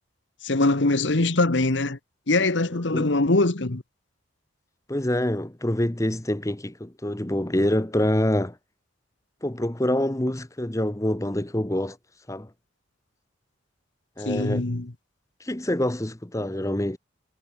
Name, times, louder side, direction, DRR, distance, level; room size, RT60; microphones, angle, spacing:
voice 1, 0.4-2.0 2.3-3.8 14.2-14.9, left 2 dB, 60° left, 1.3 m, -22 dB
voice 2, 4.9-8.6 9.4-12.0 12.3-12.5 14.2-14.6 15.4-17.0, left 1 dB, 15° left, 0.9 m, -26 dB
head